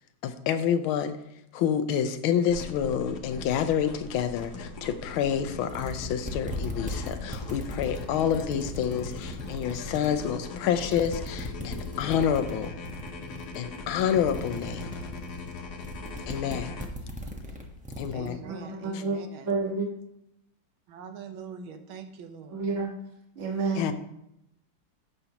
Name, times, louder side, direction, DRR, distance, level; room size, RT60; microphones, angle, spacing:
voice 1, 0.2-1.2 1.5-12.7 13.5-14.9 16.3-16.7 18.0-18.4 18.9-19.0 23.7-23.9, left 8 dB, 80° left, 10 dB, 1.5 m, -28 dB
sound 1, 2.5-16.9, left 3 dB, 60° left, 1.3 m, -40 dB
sound 2, 5.4-5.5 5.7-10.3 10.7-18.3, equal, 10° right, 0.3 m, -38 dB
voice 2, 16.9-17.6 18.1-19.5 20.9-22.7, right 5 dB, 80° right, 6 dB, 1.6 m, -44 dB
voice 3, 18.4-19.2 19.5-19.9 22.5-22.9 23.3-23.8, right 4 dB, 40° right, -1 dB, 1.6 m, -29 dB
14.5 x 5.5 x 2.9 m, 0.80 s
omnidirectional pair, 2.3 m